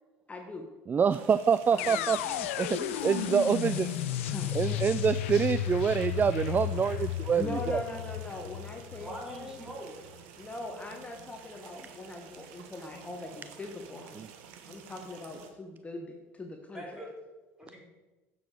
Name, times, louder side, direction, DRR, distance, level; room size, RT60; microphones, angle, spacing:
voice 1, 0.3-0.7 1.7-2.0 4.3-4.6 7.4-9.6 10.4-14.3 14.6-17.0, left 2 dB, 20° left, 2 dB, 1.3 m, -41 dB
voice 2, 0.9-3.9 4.5-7.8 14.2-14.3, right 6 dB, 25° right, 14 dB, 0.3 m, -26 dB
sound 1, 1.1-15.5, right 8 dB, 75° right, 1.2 m, -51 dB
sound 2, 1.8-9.7, left 12 dB, 85° left, 0.5 m, -33 dB
voice 3, 9.0-9.9 16.7-17.1 17.6-17.8, right 1 dB, 10° right, -2 dB, 3.7 m, -43 dB
9.4 x 7.0 x 4.9 m, 1.2 s
hypercardioid pair, 85°, 7 cm